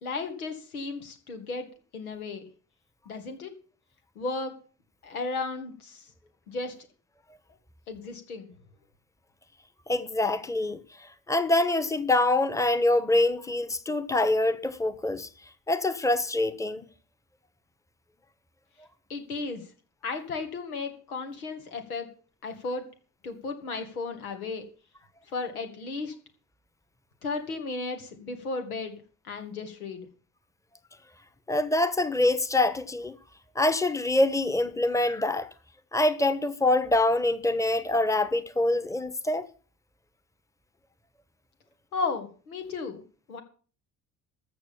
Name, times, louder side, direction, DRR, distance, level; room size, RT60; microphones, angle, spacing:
voice 1, 0.0-1.7 1.9-2.4 3.1-3.6 4.2-4.5 5.0-6.1 6.5-6.8 7.9-8.5 19.1-19.6 20.0-22.1 22.4-22.9 23.2-24.7 25.3-26.1 27.2-30.1 41.9-43.0 43.3-43.4, left 3 dB, 90° left, 2.2 m, -34 dB
voice 2, 9.9-15.3 15.7-16.8 31.5-33.2 33.5-35.5 35.9-39.4, left 2 dB, 5° left, 1.3 m, -25 dB
14.0 x 6.3 x 7.1 m
hypercardioid pair, 60°, 42 cm